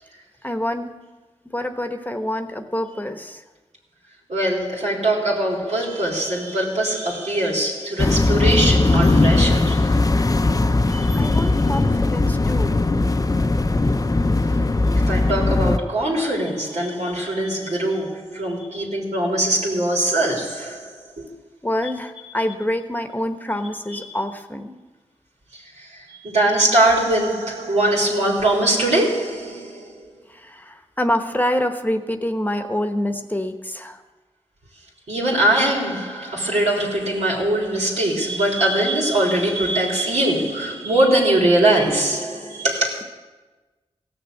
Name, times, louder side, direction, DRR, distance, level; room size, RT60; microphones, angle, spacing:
voice 1, 0.4-0.9 1.4-3.4 11.1-12.8 21.6-24.7 30.3-34.0, left 1 dB, 15° left, 1.0 m, -26 dB
voice 2, 4.3-10.0 10.9-11.5 15.1-21.3 25.5-30.1 35.1-43.0, right 1 dB, 85° right, 3.7 m, -22 dB
sound 1, 8.0-15.8, left 2 dB, 30° left, 0.6 m, -19 dB
16.5 x 6.8 x 8.0 m
cardioid pair, 55°, 11 cm